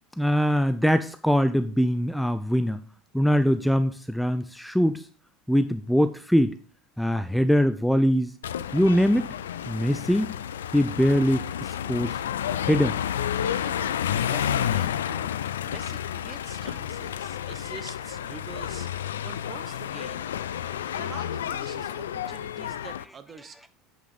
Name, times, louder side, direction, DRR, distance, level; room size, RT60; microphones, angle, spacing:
voice 1, 0.2-2.8 3.1-5.1 5.5-6.6 7.0-8.3 8.7-9.4 9.7-10.3 10.7-12.2 12.7-13.0, equal, ahead, 11 dB, 0.4 m, -22 dB
Sonicsnaps-OM-FR-voiture, 8.4-23.0, left 9 dB, 80° left, 0.3 m, -30 dB
voice 2, 13.6-15.3 15.6-20.3 20.9-23.7, right 5 dB, 30° right, 12 dB, 0.9 m, -45 dB
7.8 x 5.7 x 4.0 m, 0.43 s
hypercardioid pair, 75°, 0 cm